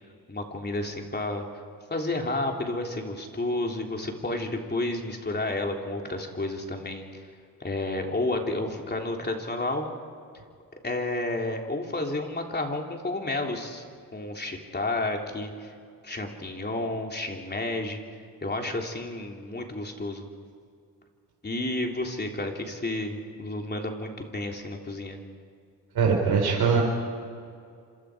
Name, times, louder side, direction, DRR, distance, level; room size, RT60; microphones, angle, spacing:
voice 1, 0.3-1.5 1.9-7.2 7.6-9.9 10.8-13.8 14.1-15.7 16.0-18.0 18.4-20.3 21.4-25.2, left 2 dB, 25° left, 1 dB, 3.5 m, -31 dB
voice 2, 25.9-26.8, right 5 dB, 85° right, -1 dB, 4.4 m, -22 dB
28.0 x 26.5 x 5.1 m, 2.2 s
cardioid pair, 95°, 37 cm